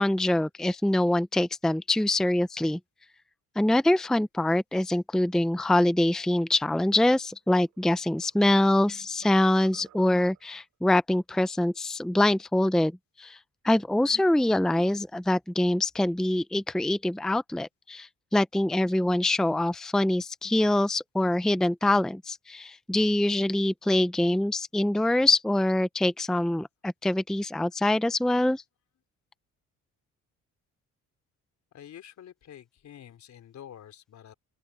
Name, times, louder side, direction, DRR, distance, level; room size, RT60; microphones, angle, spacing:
voice 1, 0.0-2.8 3.6-12.9 13.2-13.4 13.6-28.6, left 1 dB, ahead, 0.6 m, -24 dB
sound 1, 7.6-8.9 9.2-10.6, right 12 dB, 80° right, 5.7 m, -56 dB
voice 2, 31.7-34.3, left 10 dB, 65° left, 3.7 m, -48 dB
open air
cardioid pair, 90°, 30 cm